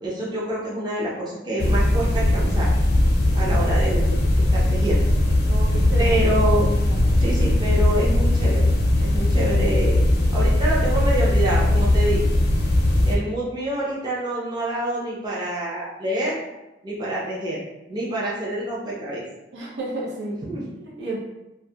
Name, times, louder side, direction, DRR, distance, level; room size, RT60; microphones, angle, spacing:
voice 1, 0.0-2.7 3.3-4.1 4.5-5.1 6.0-6.7 7.2-8.7 9.0-10.0 10.3-12.3 13.0-16.4 16.8-17.6 17.9-19.2 20.5-20.6, right 1 dB, 25° right, -6 dB, 0.5 m, -26 dB
sound 1, 1.6-13.2, left 1 dB, 60° left, 0.5 m, -19 dB
voice 2, 5.5-6.2 6.8-7.0 19.5-20.5 20.8-21.2, right 2 dB, 80° right, -4 dB, 0.7 m, -32 dB
2.3 x 2.1 x 2.7 m, 0.96 s
head